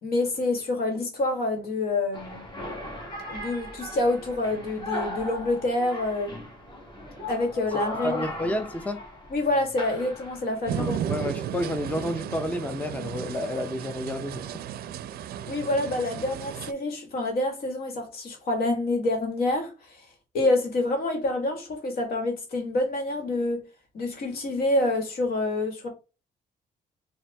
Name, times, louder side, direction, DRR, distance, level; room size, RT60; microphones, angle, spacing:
voice 1, 0.0-2.5 3.3-6.3 7.3-8.2 9.3-11.0 15.5-19.7 20.3-23.6 23.9-25.9, left 2 dB, 70° left, 1.5 m, -27 dB
sound 1, 2.1-10.6, left 1 dB, 30° left, 1.6 m, -38 dB
voice 2, 7.9-9.0 10.8-14.5, left 1 dB, 10° left, 0.5 m, -30 dB
sound 2, 10.7-16.7, right 10 dB, 75° right, 0.4 m, -34 dB
4.3 x 2.5 x 3.3 m
cardioid pair, 105°, 16 cm